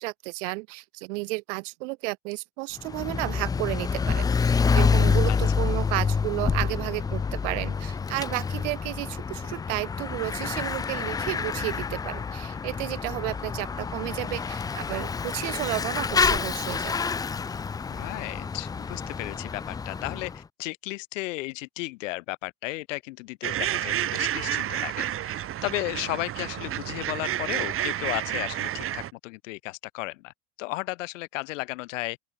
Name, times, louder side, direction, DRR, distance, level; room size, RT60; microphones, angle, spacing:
voice 1, 0.0-17.1, right 26 dB, 70° right, 1.7 m, -32 dB
Bicycle / Mechanisms, 2.8-20.4, left 5 dB, 10° left, 0.3 m, -27 dB
voice 2, 17.9-30.3 30.6-32.2, left 21 dB, 75° left, 4.4 m, -34 dB
sound 1, 23.4-29.1, right 12 dB, 35° right, 1.0 m, -30 dB
open air
hypercardioid pair, 95°, 38 cm